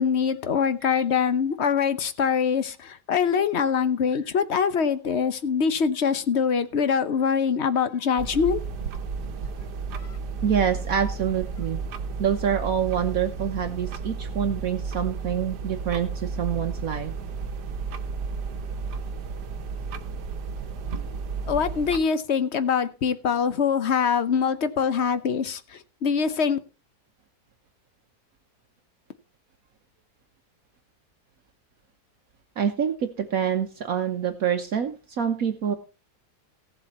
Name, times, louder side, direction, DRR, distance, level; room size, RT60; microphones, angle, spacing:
voice 1, 0.0-8.6 21.5-26.6, left 6 dB, 50° left, 13 dB, 1.0 m, -24 dB
Wall clock, 8.2-22.0, right 5 dB, 85° right, 1.5 m, -33 dB
voice 2, 10.4-11.8 12.2-17.1 32.6-35.7, right 8 dB, 65° right, 6 dB, 1.3 m, -26 dB
16.0 x 7.6 x 4.2 m, 0.32 s
omnidirectional pair, 1.7 m